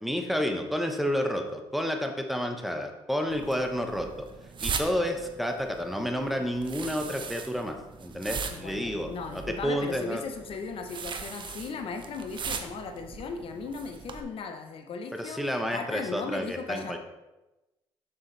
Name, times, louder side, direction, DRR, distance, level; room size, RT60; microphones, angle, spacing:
voice 1, 0.0-4.3 4.6-10.2 15.1-17.0, equal, ahead, 4 dB, 1.0 m, -30 dB
sound 1, 3.3-14.2, right 5 dB, 45° right, 0.8 m, -39 dB
voice 2, 8.5-17.0, left 4 dB, 55° left, 6 dB, 0.9 m, -37 dB
6.8 x 6.6 x 3.3 m, 1.0 s
supercardioid pair, 65°, 11 cm